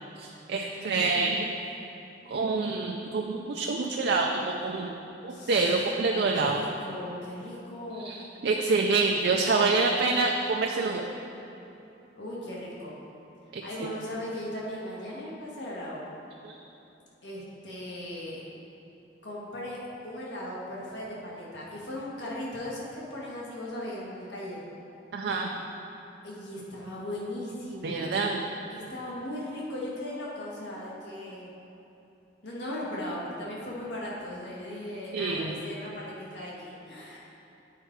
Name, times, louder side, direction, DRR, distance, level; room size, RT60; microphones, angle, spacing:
voice 1, 0.2-1.5 2.3-4.9 5.2-6.6 8.0-11.1 13.5-13.9 16.4-16.5 25.1-25.5 27.8-28.4 35.1-35.6, right 3 dB, 65° right, 1 dB, 0.4 m, -27 dB
voice 2, 0.7-1.5 5.3-5.8 6.3-8.1 12.1-12.9 13.6-16.1 17.2-18.4 19.2-24.6 26.2-28.1 28.7-31.5 32.4-37.3, left 1 dB, 70° left, -5 dB, 1.5 m, -38 dB
9.0 x 4.5 x 4.5 m, 3.0 s
head